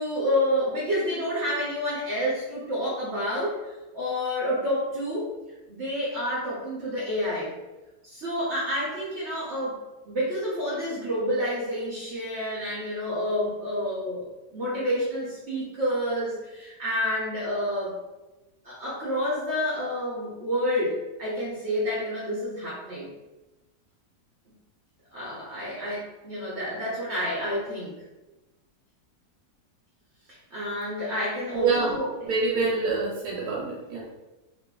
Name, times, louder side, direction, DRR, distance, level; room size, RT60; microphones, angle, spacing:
voice 1, 0.0-5.3 5.7-7.5 8.0-9.8 10.1-18.0 18.6-23.1 25.1-27.9 30.3-32.7, equal, 60° right, -7 dB, 0.7 m, -29 dB
voice 2, 31.5-34.1, right 4 dB, 80° right, -3 dB, 1.1 m, -27 dB
2.8 x 2.4 x 2.2 m, 1.1 s
omnidirectional pair, 1.7 m